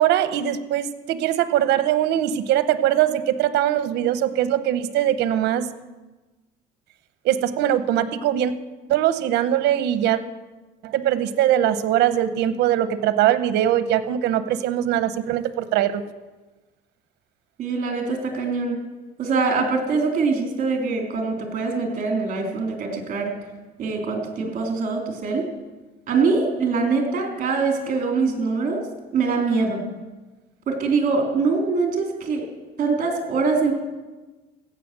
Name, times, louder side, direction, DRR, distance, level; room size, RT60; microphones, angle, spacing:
voice 1, 0.0-5.7 7.2-8.5 8.9-10.2 10.8-16.0, right 11 dB, 85° right, 13 dB, 0.9 m, -21 dB
voice 2, 17.6-18.8 19.2-23.3 23.8-25.5 26.1-28.8 29.1-29.8 30.7-32.4 32.8-33.7, right 4 dB, 50° right, 2 dB, 3.5 m, -23 dB
16.0 x 6.7 x 7.6 m, 1.2 s
cardioid pair, 110°, 17 cm